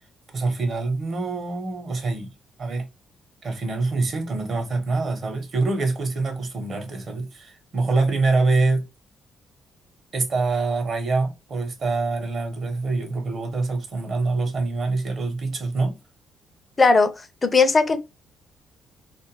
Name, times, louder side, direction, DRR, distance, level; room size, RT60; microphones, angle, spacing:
voice 1, 0.3-2.3 2.6-2.9 3.4-8.9 10.1-16.0, right 3 dB, 55° right, 0.9 m, -25 dB
voice 2, 16.8-17.1 17.4-18.0, left 4 dB, 30° left, 0.5 m, -17 dB
2.4 x 2.2 x 2.9 m
cardioid pair, 90°, 0 cm